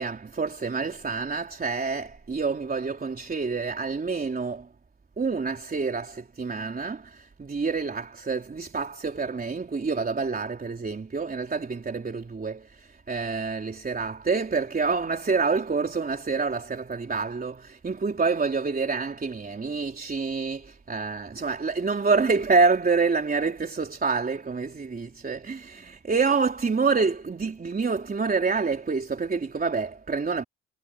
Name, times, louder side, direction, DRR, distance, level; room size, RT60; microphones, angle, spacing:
voice 1, 0.0-4.7 5.2-30.4, right 4 dB, 30° right, 3.7 m, -27 dB
cardioid pair, 90°, 30 cm